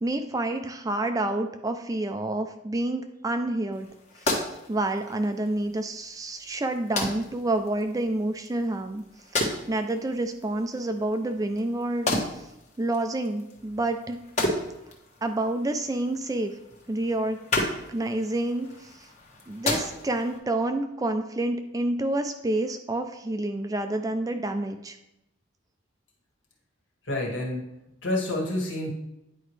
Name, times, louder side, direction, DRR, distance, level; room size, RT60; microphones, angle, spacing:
voice 1, 0.0-3.9 4.7-9.0 9.4-12.2 12.8-14.2 15.2-16.5 16.9-17.4 17.9-18.7 19.5-25.0, right 2 dB, 15° right, 7 dB, 0.3 m, -28 dB
sound 1, 3.7-20.4, left 2 dB, 35° left, 1.2 m, -34 dB
voice 2, 27.1-27.6 28.0-28.9, left 1 dB, 70° left, -1 dB, 1.8 m, -28 dB
9.9 x 4.7 x 3.2 m, 0.88 s
head